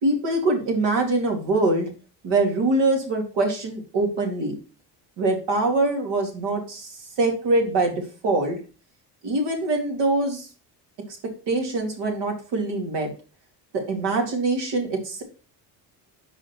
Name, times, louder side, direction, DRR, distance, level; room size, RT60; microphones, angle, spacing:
voice 1, 0.0-1.9 2.2-4.5 5.2-8.6 9.2-10.5 11.5-13.1 13.7-15.2, right 2 dB, 85° right, 2 dB, 2.5 m, -23 dB
6.8 x 4.8 x 4.5 m, 0.36 s
cardioid pair, 160°, 41 cm